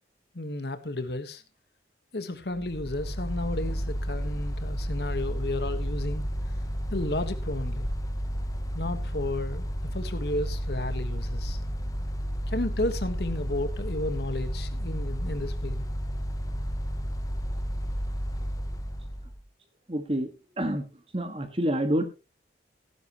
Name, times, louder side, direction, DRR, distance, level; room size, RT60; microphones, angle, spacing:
voice 1, 0.3-1.4 2.1-6.2 6.9-7.9 8.7-11.6 12.5-15.9, left 2 dB, 65° left, 10 dB, 1.4 m, -33 dB
Mechanical fan, 2.5-19.4, equal, 20° left, 1.0 m, -32 dB
voice 2, 19.9-20.3 20.6-20.8 21.1-22.0, right 1 dB, 30° right, 8 dB, 1.6 m, -27 dB
15.5 x 10.5 x 3.0 m, 0.27 s
head